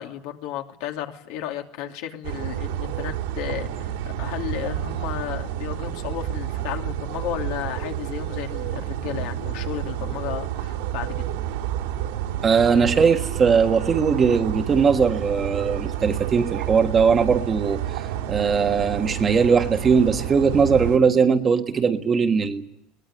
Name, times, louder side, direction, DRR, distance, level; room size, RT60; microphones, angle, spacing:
voice 1, 0.0-3.9 4.2-11.3, left 11 dB, 65° left, 3 dB, 2.7 m, -33 dB
sound 1, 2.2-21.0, right 11 dB, 85° right, 4.1 m, -30 dB
voice 2, 12.4-18.0 18.3-22.6, right 6 dB, 20° right, 5 dB, 1.5 m, -20 dB
21.5 x 19.5 x 9.9 m, 0.78 s
cardioid pair, 160°, 0 cm